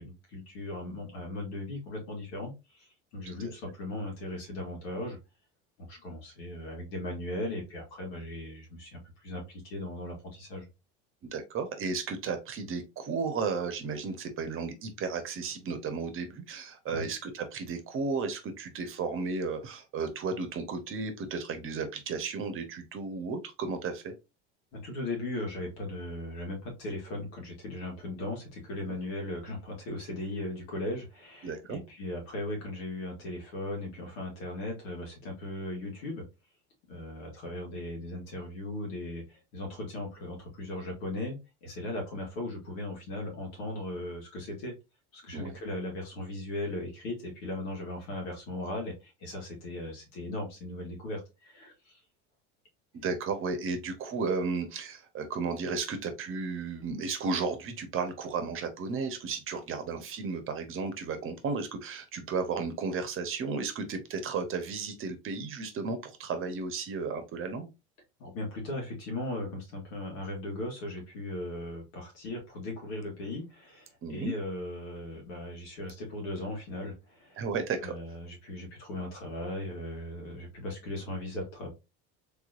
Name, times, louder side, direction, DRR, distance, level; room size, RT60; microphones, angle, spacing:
voice 1, 0.0-2.9 3.1-5.2 5.8-10.7 16.9-17.1 24.7-36.2 36.9-39.2 39.5-44.7 45.1-51.9 68.2-77.4 77.8-81.7, left 1 dB, 85° left, 0 dB, 2.0 m, -38 dB
voice 2, 11.2-24.1 31.4-31.8 45.3-45.6 52.9-67.7 74.0-74.3 77.4-77.9, right 4 dB, 40° right, 8 dB, 1.0 m, -34 dB
3.5 x 3.1 x 2.5 m, 0.26 s
supercardioid pair, 100°, 31 cm